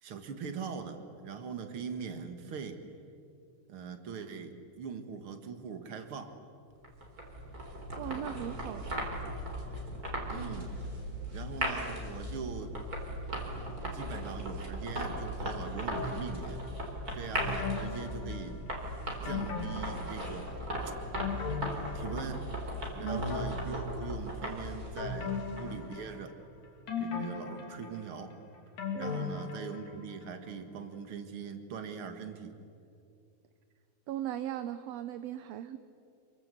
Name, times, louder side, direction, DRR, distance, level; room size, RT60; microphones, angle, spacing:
voice 1, 0.0-2.8 3.7-6.4 10.3-10.7 11.3-12.7 13.9-16.6 17.1-18.6 19.2-20.6 21.9-22.4 22.9-26.3 27.0-28.3 29.0-32.5, right 6 dB, 50° right, 7 dB, 2.4 m, -41 dB
sound 1, 6.8-25.9, equal, 30° right, 4.2 m, -38 dB
voice 2, 7.7-9.0 23.0-23.2 28.9-29.3 34.1-35.8, right 11 dB, 70° right, 11 dB, 1.8 m, -38 dB
sound 2, 15.9-16.7 17.3-18.8 19.3-20.6 20.9-22.6 23.1-24.4 25.0-26.4 26.9-30.1 30.5-30.6, left 5 dB, 70° left, 4.2 m, -38 dB
27.5 x 23.0 x 8.3 m, 2.6 s
omnidirectional pair, 3.4 m